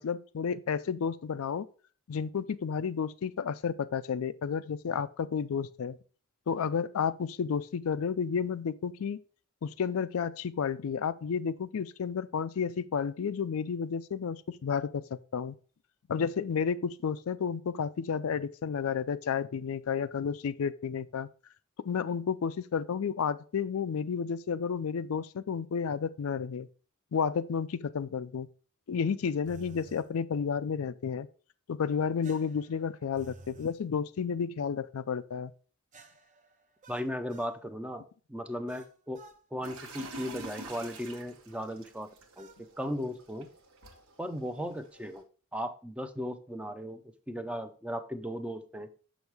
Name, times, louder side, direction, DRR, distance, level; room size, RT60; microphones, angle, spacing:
voice 1, 0.0-1.7 2.1-6.0 6.5-9.2 9.6-15.6 16.1-21.3 21.9-26.7 27.1-28.5 28.9-31.3 31.7-35.5, left 6 dB, 75° left, 0.4 m, -31 dB
sound 1, 29.4-30.1 32.2-33.8 35.9-37.6 38.7-39.4 40.5-40.8 42.4-42.6, right 3 dB, 35° right, 0.8 m, -53 dB
voice 2, 36.9-38.0 38.3-39.2 39.5-42.1 42.4-42.5 42.8-43.5 44.2-45.2 45.5-48.9, equal, 5° right, 0.5 m, -36 dB
sound 2, 39.6-45.2, right 2 dB, 70° right, 1.1 m, -47 dB
6.4 x 6.2 x 3.4 m
head